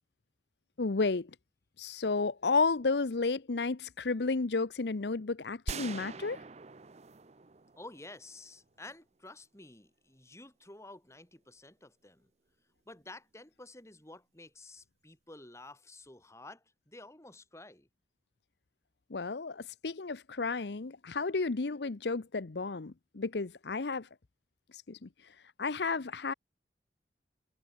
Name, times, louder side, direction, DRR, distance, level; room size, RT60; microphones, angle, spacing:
voice 1, 0.8-1.3 1.8-6.4 19.1-24.1 24.7-25.1 25.6-26.3, left 4 dB, 75° left, 0.8 m, -32 dB
sound 1, 5.7-8.6, right 4 dB, 40° right, 0.8 m, -43 dB
voice 2, 7.8-12.3 12.9-17.9, left 2 dB, 15° left, 3.3 m, -51 dB
head